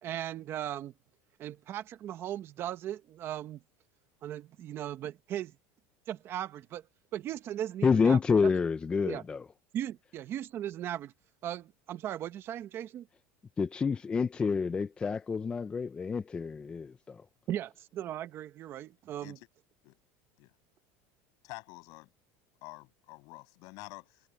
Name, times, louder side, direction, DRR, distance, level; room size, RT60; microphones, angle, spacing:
voice 1, 0.0-0.9 1.4-3.6 4.2-5.5 6.1-6.8 7.1-8.5 9.0-9.2 9.7-11.1 11.4-13.1 17.5-19.4, right 11 dB, 35° right, 0.9 m, -37 dB
voice 2, 7.8-9.4 13.6-17.2, left 5 dB, 15° left, 0.4 m, -28 dB
voice 3, 21.4-22.1 22.6-24.3, left 26 dB, 55° left, 7.1 m, -48 dB
cardioid pair, 165°, 7 cm